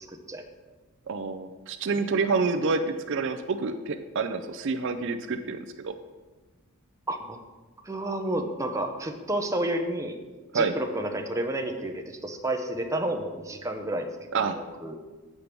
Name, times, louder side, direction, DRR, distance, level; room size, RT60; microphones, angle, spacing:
voice 1, 0.1-0.5 7.1-7.4 7.8-10.2 10.5-14.1 14.4-15.0, right 1 dB, 15° right, 4 dB, 0.6 m, -31 dB
voice 2, 1.1-5.6 5.8-5.9 10.5-10.7 14.3-14.6, right 4 dB, 55° right, 9 dB, 0.4 m, -28 dB
8.3 x 5.1 x 6.0 m, 1.3 s
head